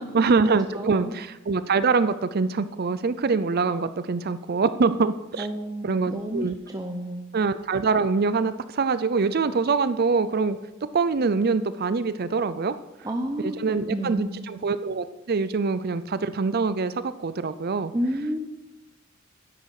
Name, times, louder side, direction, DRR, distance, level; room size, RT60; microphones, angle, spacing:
voice 1, 0.1-5.5 5.8-6.6 7.3-10.6 10.9-12.7 13.4-17.9, right 4 dB, 45° right, 13 dB, 0.5 m, -24 dB
voice 2, 0.7-1.1 5.4-7.2 13.0-14.5 17.9-18.4, equal, 15° right, 2 dB, 0.8 m, -30 dB
12.0 x 10.5 x 4.9 m, 1.0 s
head